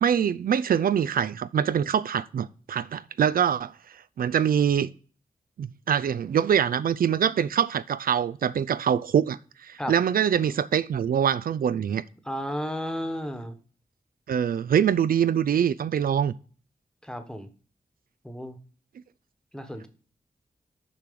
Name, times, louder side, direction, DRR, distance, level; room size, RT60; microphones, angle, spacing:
voice 1, 0.0-3.7 4.2-4.9 5.6-12.0 14.3-16.3, right 8 dB, 80° right, 0.4 m, -24 dB
voice 2, 12.3-13.5 17.0-17.5 18.2-18.6 19.5-19.9, equal, 5° left, 1.2 m, -33 dB
7.0 x 4.7 x 6.8 m
wide cardioid pair, 90°, 15 cm